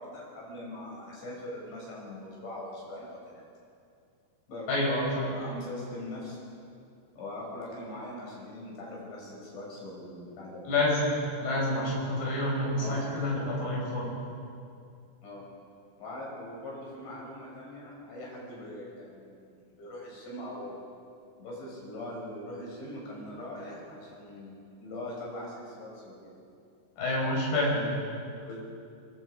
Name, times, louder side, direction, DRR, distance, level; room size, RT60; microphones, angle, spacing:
voice 1, 0.0-3.2 4.5-4.7 5.2-6.4 7.2-10.6 12.8-13.1 15.2-15.4 16.0-20.8 21.4-26.3 28.4-28.7, left 1 dB, 80° left, -3 dB, 8.3 m, -41 dB
voice 2, 4.7-5.4 10.7-11.0 11.4-14.2 27.0-27.9, left 1 dB, 65° left, -4 dB, 7.6 m, -28 dB
25.0 x 22.0 x 5.1 m, 2.4 s
omnidirectional pair, 5.1 m